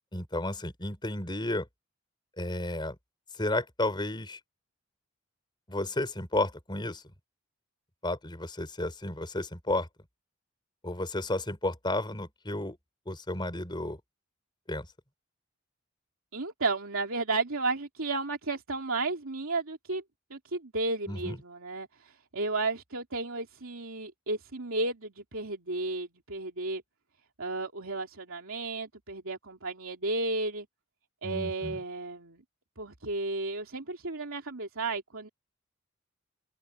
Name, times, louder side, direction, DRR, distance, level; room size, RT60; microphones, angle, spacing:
voice 1, 0.1-1.7 2.4-2.9 3.4-4.4 5.7-7.0 8.0-9.9 10.8-12.8 13.1-14.0 14.7-14.9 21.1-21.4 31.2-31.8, left 1 dB, 20° left, 4.9 m, -32 dB
voice 2, 16.3-20.0 20.3-26.8 27.4-30.7 31.2-32.4 32.8-35.3, right 3 dB, 80° right, 2.8 m, -33 dB
open air
head